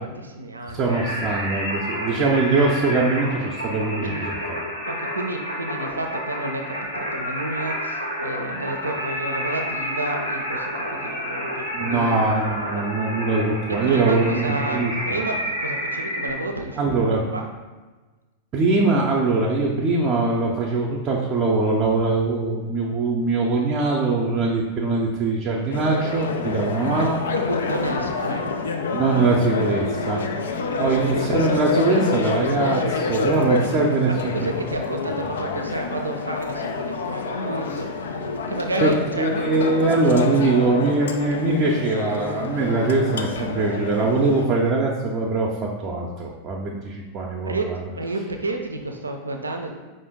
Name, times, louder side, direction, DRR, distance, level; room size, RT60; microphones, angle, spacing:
voice 1, 0.0-0.9 4.0-4.2 4.9-12.1 12.7-12.9 13.7-17.5 27.4-28.7 30.7-30.8 34.1-38.2 38.5-39.3 47.5-49.9, right 2 dB, 80° right, 4 dB, 0.5 m, -31 dB
voice 2, 0.7-4.1 11.7-15.2 16.8-17.2 18.5-27.2 28.9-30.2 30.8-34.5 38.8-47.8, right 3 dB, 30° right, -2 dB, 0.6 m, -22 dB
Singing, 0.9-16.3, equal, 85° left, 1.4 m, -29 dB
sound 1, 25.7-44.5, left 4 dB, 65° left, 0.4 m, -27 dB
5.0 x 2.6 x 3.6 m, 1.2 s
figure-of-eight pair, 90°, 0 cm